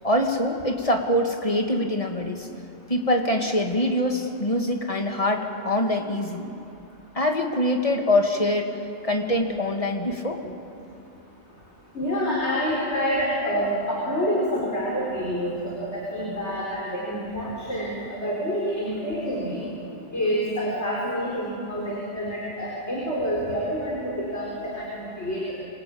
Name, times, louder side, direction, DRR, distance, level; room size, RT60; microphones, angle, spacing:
voice 1, 0.0-2.5 2.9-6.5 7.1-8.7 9.0-10.4, left 1 dB, 30° left, 3 dB, 2.2 m, -24 dB
voice 2, 11.9-19.6 20.1-25.5, equal, 70° left, -4 dB, 5.1 m, -27 dB
27.0 x 25.0 x 8.7 m, 2.7 s
omnidirectional pair, 1.2 m